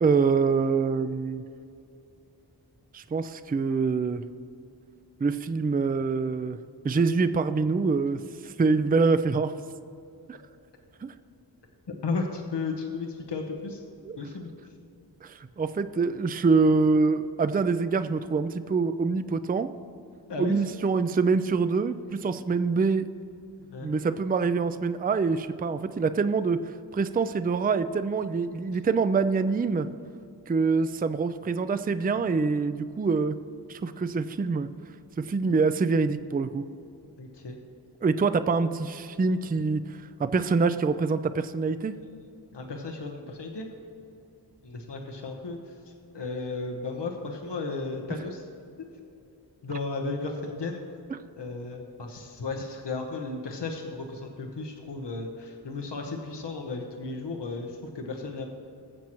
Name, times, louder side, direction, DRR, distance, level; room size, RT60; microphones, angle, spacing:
voice 1, 0.0-1.4 2.9-4.2 5.2-6.6 6.8-9.5 10.3-10.4 11.0-11.1 14.1-14.2 15.2-19.7 20.4-23.1 23.8-29.9 30.5-33.4 33.7-34.7 35.2-36.6 38.0-42.0, right 4 dB, 25° right, 12 dB, 0.4 m, -25 dB
voice 2, 12.0-13.8 14.2-14.5 20.3-20.5 23.7-23.9 37.2-37.6 42.5-43.7 44.6-48.4 49.6-50.8 51.3-58.5, left 3 dB, 85° left, 2 dB, 1.0 m, -34 dB
20.0 x 7.4 x 3.0 m, 2.7 s
wide cardioid pair, 60°, 41 cm